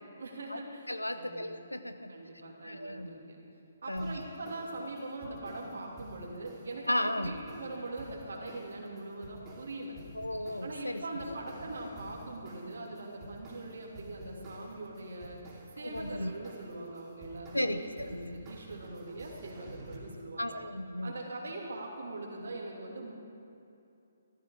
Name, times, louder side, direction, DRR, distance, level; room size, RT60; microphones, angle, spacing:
voice 1, 0.2-1.4 2.1-3.4 3.8-10.0 10.6-15.4 15.8-20.6 21.0-23.1, right 2 dB, 65° right, -1 dB, 2.8 m, -42 dB
voice 2, 0.9-2.1 2.6-3.1 3.9-4.2 6.9-7.4 10.1-11.3 15.8-16.3 17.5-18.4 20.4-21.2, left 1 dB, 90° left, 10 dB, 0.8 m, -35 dB
sound 1, 4.0-20.0, right 1 dB, 20° right, 2.9 m, -51 dB
14.5 x 13.0 x 5.0 m, 2.7 s
figure-of-eight pair, 135°, 0 cm